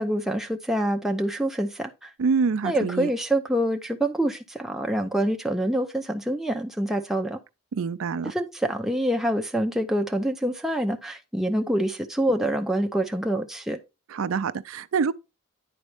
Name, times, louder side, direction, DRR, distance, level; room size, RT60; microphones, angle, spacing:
voice 1, 0.0-2.1 2.6-7.4 8.2-13.8, right 1 dB, ahead, 0.6 m, -26 dB
voice 2, 2.2-3.1 7.7-8.3 14.1-15.1, right 5 dB, 75° right, 0.4 m, -26 dB
9.9 x 4.1 x 3.3 m
head